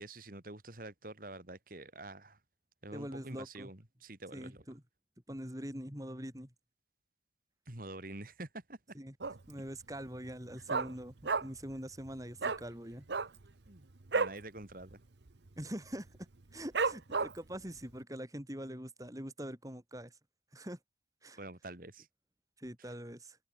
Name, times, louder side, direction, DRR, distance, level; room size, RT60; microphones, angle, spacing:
voice 1, 0.0-2.4 2.8-4.6 7.7-8.8 13.7-15.0 21.4-22.1, right 2 dB, 50° right, 2.6 m, -47 dB
voice 2, 2.9-3.7 4.3-4.8 5.3-6.5 8.9-9.1 9.5-13.0 15.6-20.1 20.5-20.8 21.2-21.4 22.6-23.4, equal, 20° right, 5.3 m, -44 dB
Dog, 9.2-9.6 9.9-10.0 10.3-11.7 12.0-12.1 12.4-12.6 13.0-14.4 14.8-14.9 15.2-15.6 16.1-16.2 16.7-17.5 18.0-18.1, right 4 dB, 75° right, 1.0 m, -33 dB
head